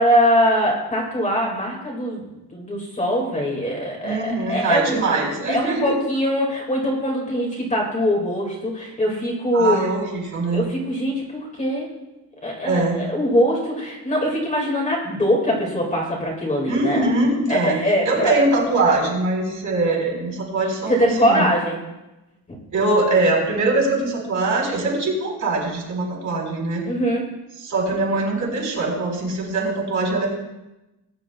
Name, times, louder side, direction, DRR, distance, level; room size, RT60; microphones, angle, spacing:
voice 1, 0.0-2.3 2.5-5.2 5.5-9.8 10.5-11.9 12.4-17.1 17.5-18.4 20.9-21.8 26.9-27.3, equal, 20° left, -2 dB, 2.0 m, -22 dB
voice 2, 4.0-6.0 9.5-10.6 12.6-13.0 16.7-17.8 18.0-21.5 22.7-26.8 27.6-30.3, right 2 dB, 45° right, -3 dB, 4.2 m, -22 dB
20.0 x 10.0 x 2.3 m, 1.0 s
cardioid pair, 180°, 41 cm